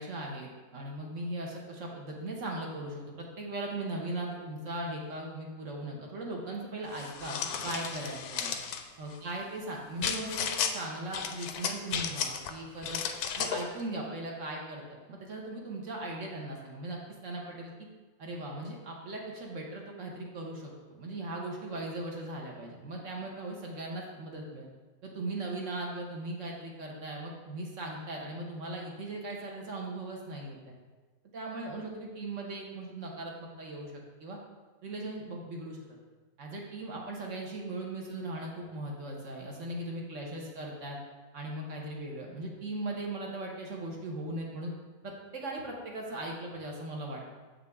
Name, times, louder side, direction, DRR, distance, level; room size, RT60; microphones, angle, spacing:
voice 1, 0.0-8.6 9.0-13.0 13.4-14.8 15.1-17.7 18.2-24.7 25.0-30.6 31.3-34.4 34.8-36.0 36.4-41.0 41.3-44.7 45.0-47.2, right 2 dB, 55° right, -1 dB, 1.4 m, -38 dB
sound 1, 6.9-8.8 10.0-10.7 11.1-12.5 12.8-13.7, left 7 dB, 80° left, 1.1 m, -34 dB
7.1 x 5.9 x 3.5 m, 1.3 s
omnidirectional pair, 1.6 m